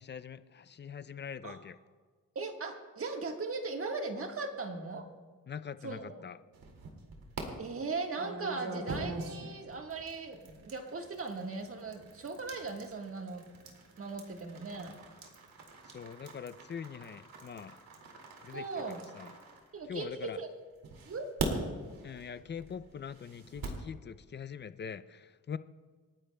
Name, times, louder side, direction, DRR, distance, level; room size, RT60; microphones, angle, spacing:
voice 1, 0.0-1.8 5.5-6.4 15.8-17.8 18.4-18.6 19.1-19.3 19.9-20.4 22.0-25.6, left 7 dB, 35° left, 13 dB, 0.4 m, -43 dB
voice 2, 2.3-5.1 5.8-6.2 7.6-13.4 14.0-14.9 18.5-19.0 19.7-20.5 21.1-21.8, right 3 dB, 40° right, 3 dB, 1.5 m, -38 dB
sound 1, 6.5-7.4 8.1-20.2 20.8-23.9, right 3 dB, 85° right, 2.3 m, -43 dB
28.0 x 10.0 x 2.2 m, 1.5 s
wide cardioid pair, 125°, 34 cm